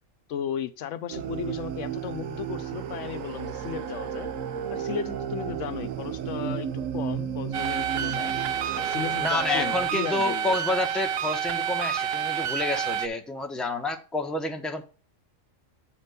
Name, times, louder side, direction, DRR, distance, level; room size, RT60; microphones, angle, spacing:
voice 1, 0.3-4.3 4.7-8.3 8.8-10.6, left 9 dB, 75° left, 12 dB, 0.9 m, -35 dB
sound 1, 1.1-9.9, right 8 dB, 90° right, 1.1 m, -33 dB
sound 2, 7.5-13.1, right 9 dB, 60° right, 0.7 m, -29 dB
voice 2, 9.2-14.8, left 2 dB, ahead, 4 dB, 0.8 m, -29 dB
9.0 x 4.4 x 5.0 m, 0.35 s
omnidirectional pair, 1.3 m